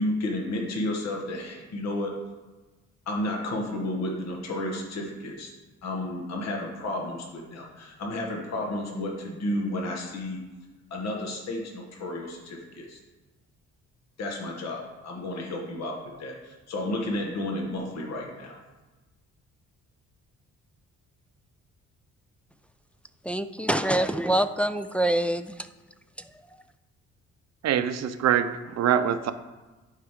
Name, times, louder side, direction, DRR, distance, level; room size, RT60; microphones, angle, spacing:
voice 1, 0.0-2.1 3.1-5.5 5.8-10.4 10.9-13.0 14.2-18.6, left 1 dB, 60° left, 0 dB, 1.4 m, -32 dB
voice 2, 23.2-25.7 26.2-26.3, right 1 dB, 5° left, 8 dB, 0.3 m, -25 dB
voice 3, 27.6-29.3, right 9 dB, 60° right, 10 dB, 0.6 m, -24 dB
11.5 x 4.9 x 3.6 m, 1.2 s
cardioid pair, 90°, 30 cm